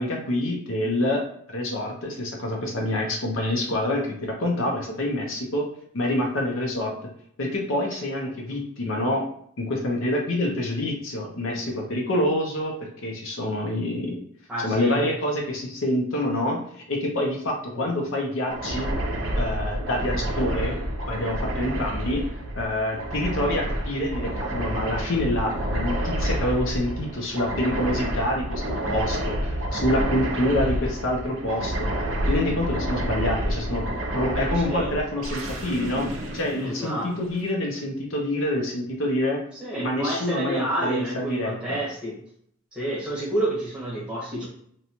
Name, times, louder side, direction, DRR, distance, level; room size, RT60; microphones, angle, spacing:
voice 1, 0.0-5.7 5.9-6.9 7.4-9.3 9.6-14.1 14.6-16.6 16.9-18.9 19.4-20.8 21.0-22.2 22.6-31.9 32.3-33.8 34.1-39.4 39.8-41.5, left 1 dB, 65° left, 0 dB, 0.6 m, -27 dB
voice 2, 14.5-15.1 17.7-17.9 34.5-35.0 36.6-37.1 39.5-42.2 42.7-44.5, right 1 dB, 5° right, -6 dB, 1.0 m, -29 dB
sound 1, 18.5-37.3, right 1 dB, 65° right, 0.5 m, -29 dB
2.7 x 2.2 x 2.8 m, 0.66 s
head